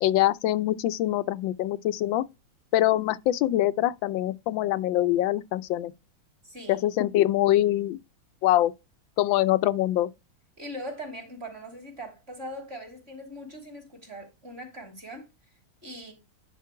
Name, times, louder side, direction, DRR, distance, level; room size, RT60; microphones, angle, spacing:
voice 1, 0.0-2.2 2.7-5.9 6.7-8.0 8.4-8.7 9.2-10.1, left 14 dB, 85° left, 1.3 m, -24 dB
voice 2, 6.4-6.8 10.6-15.3 15.8-16.1, equal, 30° right, 3.2 m, -40 dB
10.5 x 3.8 x 4.7 m
omnidirectional pair, 2.0 m